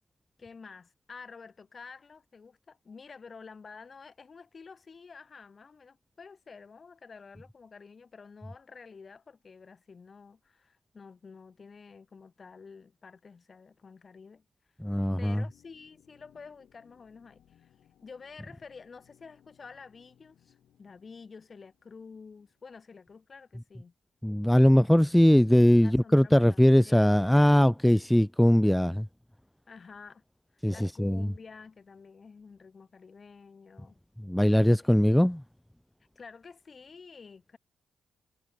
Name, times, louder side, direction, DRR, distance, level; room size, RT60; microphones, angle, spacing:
voice 1, 0.4-14.5 15.2-17.7 18.0-23.9 25.8-27.6 29.7-30.2 30.5-34.0 34.8-34.9 36.2-37.6, left 5 dB, 40° left, 5.5 m, -50 dB
voice 2, 14.8-15.4 24.2-29.1 30.6-31.3 34.2-35.4, equal, 5° left, 0.4 m, -21 dB
sound 1, 15.1-23.7, left 10 dB, 80° left, 7.0 m, -65 dB
cardioid pair, 90°, 0 cm